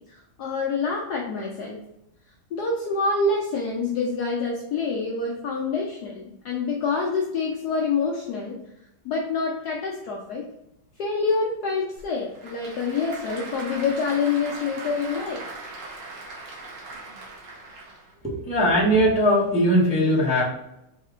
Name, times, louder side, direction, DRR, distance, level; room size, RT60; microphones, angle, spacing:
voice 1, 0.0-1.8 2.5-8.6 9.0-10.5 11.0-15.4, left 4 dB, 70° left, -1 dB, 1.0 m, -26 dB
Applause / Crowd, 12.0-18.1, right 3 dB, 75° right, 1.9 m, -39 dB
voice 2, 18.2-20.4, equal, 5° right, -7 dB, 0.9 m, -20 dB
4.3 x 3.2 x 3.6 m, 0.84 s
omnidirectional pair, 2.2 m